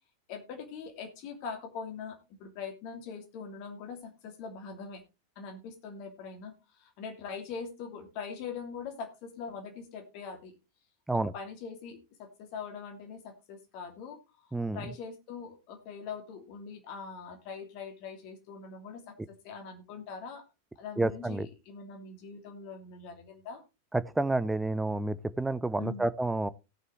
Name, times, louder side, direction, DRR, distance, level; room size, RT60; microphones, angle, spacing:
voice 1, 0.3-5.0 5.4-10.5 11.1-14.2 14.4-20.4 20.8-23.6 25.8-26.1, left 5 dB, 45° left, 2.8 m, -42 dB
voice 2, 14.5-14.8 21.0-21.5 23.9-26.5, right 2 dB, 5° right, 0.6 m, -29 dB
18.0 x 6.9 x 3.2 m
figure-of-eight pair, 90°, 0 cm